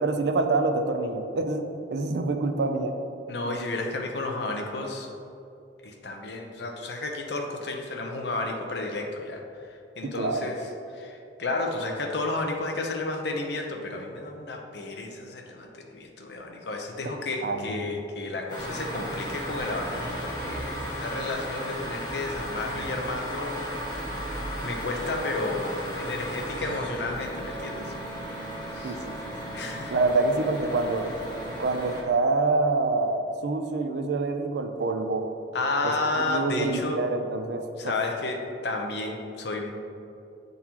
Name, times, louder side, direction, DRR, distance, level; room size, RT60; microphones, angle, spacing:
voice 1, 0.0-3.0 10.0-10.5 17.4-17.9 28.8-29.1 29.9-31.1 31.6-35.3 35.8-35.9 36.3-38.0, right 3 dB, 70° right, 6 dB, 0.5 m, -26 dB
voice 2, 3.3-5.1 5.8-9.4 10.0-10.6 10.9-23.8 24.2-24.3 24.6-27.9 28.7-29.0 29.5-30.0 35.5-37.0 37.8-39.7, left 2 dB, 65° left, 2 dB, 0.7 m, -32 dB
sound 1, 18.5-32.0, equal, 25° left, 1.3 m, -35 dB
8.6 x 3.9 x 2.9 m, 2.7 s
head